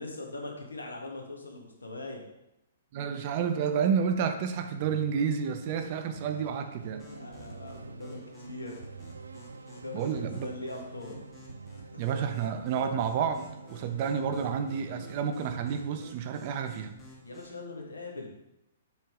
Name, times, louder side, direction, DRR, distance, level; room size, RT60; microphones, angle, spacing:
voice 1, 0.0-2.3 7.1-8.8 9.7-11.2 11.9-12.2 17.2-18.3, left 2 dB, 90° left, 1 dB, 1.6 m, -41 dB
voice 2, 2.9-7.1 9.9-10.5 12.0-17.0, right 7 dB, 45° right, 8 dB, 0.8 m, -30 dB
sound 1, 4.5-16.2, right 4 dB, 85° right, 0.4 m, -46 dB
sound 2, 7.0-17.6, left 1 dB, 10° left, 2.3 m, -53 dB
7.6 x 4.7 x 3.7 m, 0.86 s
hypercardioid pair, 120°, 0 cm